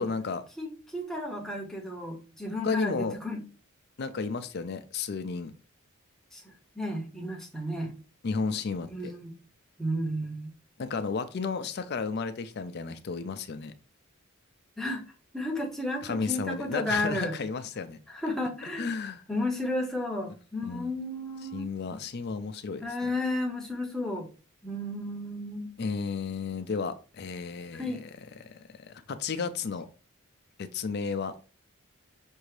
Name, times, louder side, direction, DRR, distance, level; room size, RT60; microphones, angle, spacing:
voice 1, 0.0-0.4 2.6-3.2 4.0-5.6 8.2-9.1 10.8-13.7 16.0-18.0 18.8-19.2 20.6-20.9 21.5-23.1 25.8-28.0 28.4-29.9 30.6-31.4, left 5 dB, 50° left, 0.4 m, -33 dB
voice 2, 0.6-3.4 6.3-6.4 6.8-7.9 8.9-9.3 9.8-10.5 14.8-15.0 15.3-17.3 18.1-18.9 19.3-21.7 22.8-24.3 24.6-25.7 27.7-28.0, left 1 dB, ahead, 0.8 m, -33 dB
5.9 x 2.7 x 3.2 m
head